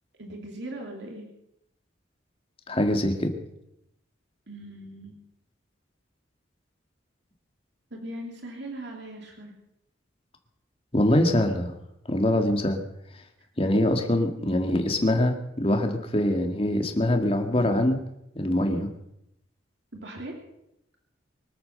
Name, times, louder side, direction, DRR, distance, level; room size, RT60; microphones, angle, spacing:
voice 1, 0.2-1.3 4.5-5.1 7.9-9.5 19.9-20.3, right 1 dB, 60° right, 1 dB, 3.0 m, -39 dB
voice 2, 2.7-3.3 10.9-11.7 12.1-12.8 13.6-18.0 18.4-18.9, left 1 dB, 30° left, 5 dB, 2.0 m, -23 dB
24.5 x 8.8 x 6.7 m, 0.81 s
head